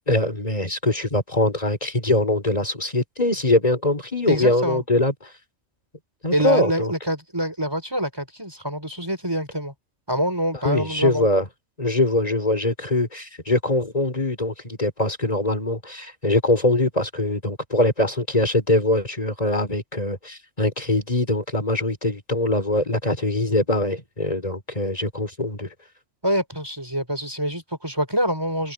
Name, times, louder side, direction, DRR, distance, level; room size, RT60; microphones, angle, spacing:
voice 1, 0.0-5.1 6.2-6.9 10.6-11.4 11.8-25.7, left 2 dB, 30° left, 3.9 m, -22 dB
voice 2, 4.3-4.8 6.3-9.7 10.1-11.3 26.2-28.7, equal, 20° right, 4.9 m, -25 dB
omnidirectional pair, 1.3 m